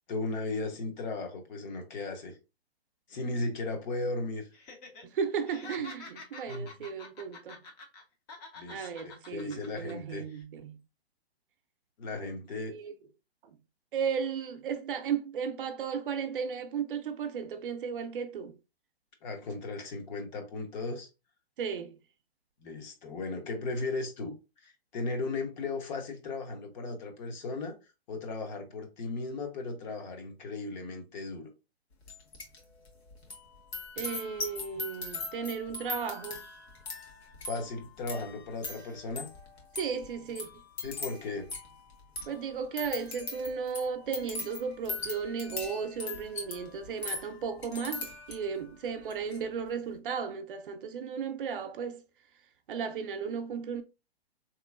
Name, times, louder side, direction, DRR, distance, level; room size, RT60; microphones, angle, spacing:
voice 1, 0.1-2.4 3.1-4.5 6.5-6.7 8.6-10.3 12.0-12.7 19.2-21.1 22.6-24.4 24.6-27.7 28.1-31.5 37.4-39.3 40.8-41.5, left 3 dB, 45° left, 1.0 m, -36 dB
Laughter, 4.5-5.0 5.3-8.0 8.3-9.9 10.3-10.4, left 3 dB, 20° left, 0.5 m, -47 dB
voice 2, 5.0-7.6 8.7-10.8 12.6-12.9 13.4-13.6 13.9-18.5 21.6-22.0 34.0-36.5 39.7-40.5 42.3-52.0 52.7-53.8, right 6 dB, 55° right, 0.6 m, -35 dB
sound 1, 32.1-32.6 32.8-48.6 49.0-49.4, left 3 dB, 75° left, 1.4 m, -41 dB
3.5 x 3.0 x 2.3 m
hypercardioid pair, 130°, 32 cm